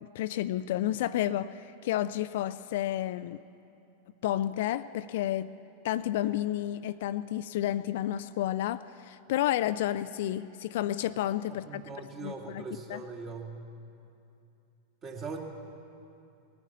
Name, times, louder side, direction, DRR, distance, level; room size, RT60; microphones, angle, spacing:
voice 1, 0.0-3.4 4.2-5.5 5.8-11.8 12.2-13.0, left 13 dB, 55° left, 14 dB, 0.3 m, -31 dB
voice 2, 11.5-13.5 15.0-15.4, right 4 dB, 30° right, 1 dB, 2.1 m, -40 dB
19.0 x 9.4 x 7.3 m, 2.6 s
figure-of-eight pair, 90°, 0 cm